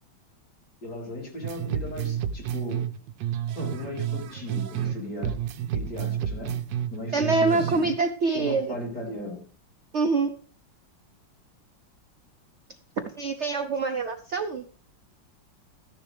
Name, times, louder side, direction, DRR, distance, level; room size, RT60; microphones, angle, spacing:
voice 1, 0.8-2.8 3.5-5.3 5.7-6.5 6.9-7.9 8.3-9.4, left 1 dB, 55° left, -1 dB, 4.4 m, -36 dB
sound 1, 1.4-5.0 5.2-8.0, right 9 dB, 75° right, 1.4 m, -30 dB
voice 2, 7.1-8.7 9.9-10.3 13.2-14.6, right 3 dB, 55° right, 7 dB, 0.8 m, -25 dB
14.0 x 10.5 x 3.3 m, 0.41 s
omnidirectional pair, 2.0 m